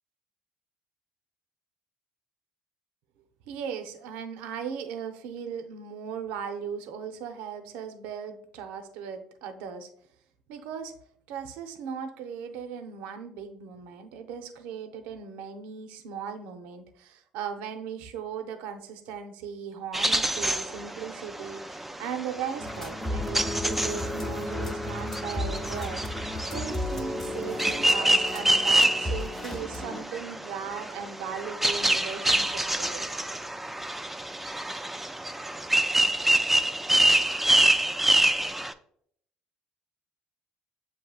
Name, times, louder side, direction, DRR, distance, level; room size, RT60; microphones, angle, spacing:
voice 1, 3.4-9.9 10.5-10.9 11.3-33.1, right 7 dB, 80° right, 7 dB, 0.5 m, -38 dB
sound 1, 19.9-38.7, right 1 dB, 5° right, 0.3 m, -27 dB
sound 2, 22.6-30.0, left 1 dB, 15° left, 0.8 m, -33 dB
7.3 x 2.7 x 2.3 m, 0.66 s
supercardioid pair, 80°, 3 cm